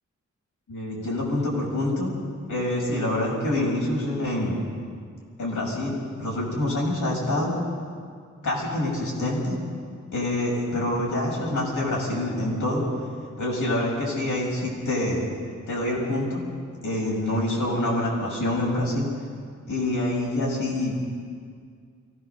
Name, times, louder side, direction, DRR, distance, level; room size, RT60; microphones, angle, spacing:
voice 1, 0.7-2.1 2.5-4.6 5.4-7.6 8.4-9.5 10.1-12.8 13.4-15.3 15.7-16.4 16.8-19.1 19.7-20.9, left 1 dB, 90° left, -3 dB, 6.0 m, -26 dB
23.5 x 17.5 x 6.7 m, 2.1 s
wide cardioid pair, 120°, 30 cm